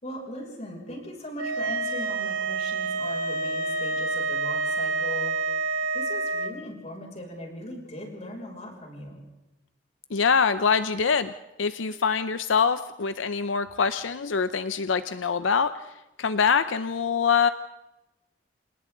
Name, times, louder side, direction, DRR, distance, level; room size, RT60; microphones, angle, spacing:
voice 1, 0.0-5.3 5.9-9.2, left 1 dB, 35° left, 0 dB, 6.4 m, -39 dB
sound 1, 1.4-6.5, right 3 dB, 90° right, 1.3 m, -28 dB
voice 2, 10.1-11.3 11.6-15.8 16.2-17.5, left 6 dB, 85° left, 12 dB, 0.7 m, -24 dB
29.5 x 27.5 x 3.9 m, 0.98 s
head